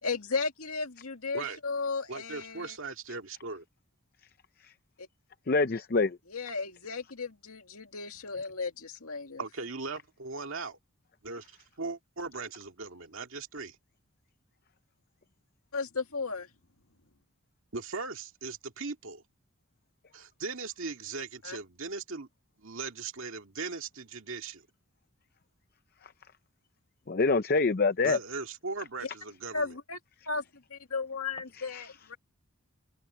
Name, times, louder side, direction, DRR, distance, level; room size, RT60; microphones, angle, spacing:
voice 1, 0.0-2.7 5.0-5.1 6.3-9.4 15.7-16.5 21.4-21.6 29.0-29.1 29.5-30.0 30.3-30.4 30.7-32.2, left 4 dB, 80° left, 2.3 m, -35 dB
voice 2, 2.1-3.6 9.4-10.8 11.2-13.8 17.7-19.2 20.1-22.3 22.6-24.7 28.0-29.7, right 4 dB, 65° right, 2.1 m, -39 dB
voice 3, 5.5-6.2 27.1-28.2 31.7-31.9, left 3 dB, 45° left, 0.6 m, -25 dB
head